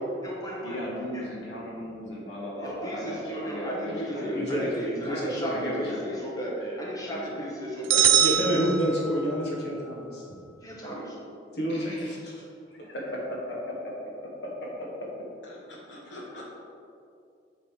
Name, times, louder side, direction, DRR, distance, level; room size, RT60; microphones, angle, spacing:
voice 1, 0.0-0.8 1.1-1.2 2.6-8.6 10.6-11.2, equal, 20° left, -4 dB, 1.4 m, -34 dB
voice 2, 0.6-4.7 5.5-6.3 7.1-7.4 11.7-12.2 12.8-13.9 14.2-15.1 15.4-16.5, left 1 dB, 85° left, -4 dB, 1.9 m, -36 dB
voice 3, 3.9-5.7 6.6-6.8 8.2-10.2 11.5-12.4, equal, 60° left, -3 dB, 1.8 m, -29 dB
sound 1, 7.9-9.5, right 10 dB, 90° right, 0.5 m, -23 dB
8.0 x 4.1 x 5.2 m, 2.5 s
head